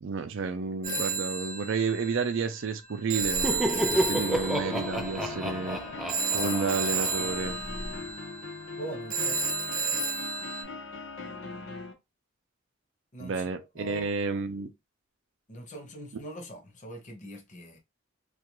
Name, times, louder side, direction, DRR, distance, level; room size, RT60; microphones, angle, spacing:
voice 1, 0.0-5.8 6.3-7.6 13.2-14.7 16.1-16.2, right 4 dB, 70° right, 0.4 m, -31 dB
Telephone, 0.8-10.6, right 4 dB, 45° right, 0.8 m, -32 dB
Laughter, 3.2-7.9, right 1 dB, ahead, 0.4 m, -31 dB
sound 1, 3.9-11.9, left 3 dB, 75° left, 0.7 m, -40 dB
voice 2, 8.8-9.4 10.4-10.5 13.1-13.5 13.7-14.1 15.5-17.8, right 1 dB, 40° left, 0.8 m, -42 dB
2.4 x 2.2 x 2.9 m
head